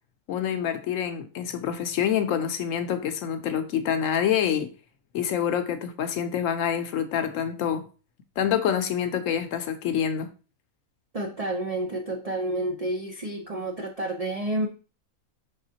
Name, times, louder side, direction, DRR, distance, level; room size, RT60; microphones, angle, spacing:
voice 1, 0.3-4.7 5.1-7.9 8.4-10.3, left 9 dB, 70° left, 8 dB, 0.9 m, -26 dB
voice 2, 11.1-14.7, right 1 dB, 60° right, 1 dB, 0.3 m, -30 dB
5.6 x 3.5 x 2.7 m, 0.35 s
omnidirectional pair, 1.5 m